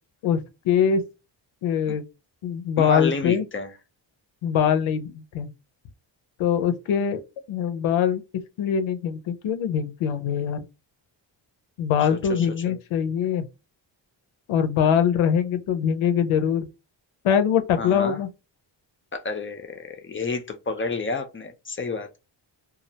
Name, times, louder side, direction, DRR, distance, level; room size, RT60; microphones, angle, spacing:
voice 1, 0.6-1.0 1.6-2.0 2.4-3.4 4.4-5.5 6.4-7.2 7.5-8.2 8.6-10.6 11.8-13.5 14.5-16.7 17.2-18.3, left 8 dB, 90° left, 0.5 m, -23 dB
voice 2, 2.8-3.7 12.0-12.7 17.8-18.2 19.1-22.2, left 4 dB, 25° left, 0.5 m, -30 dB
2.3 x 2.0 x 2.7 m
cardioid pair, 70°, 47 cm